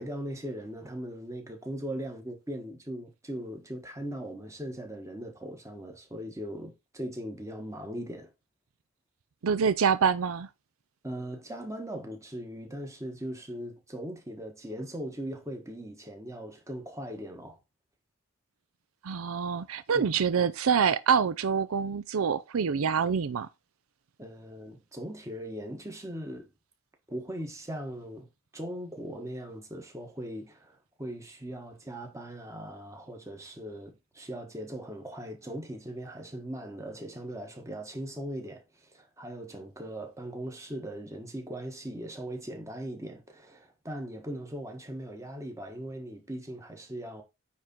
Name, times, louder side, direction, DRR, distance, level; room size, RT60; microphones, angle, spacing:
voice 1, 0.0-8.3 11.0-17.6 19.9-20.2 24.2-26.5 27.1-47.2, right 1 dB, 15° right, 1.5 m, -39 dB
voice 2, 9.4-10.5 19.0-23.5, right 6 dB, 75° right, 0.5 m, -26 dB
9.4 x 3.7 x 4.4 m
head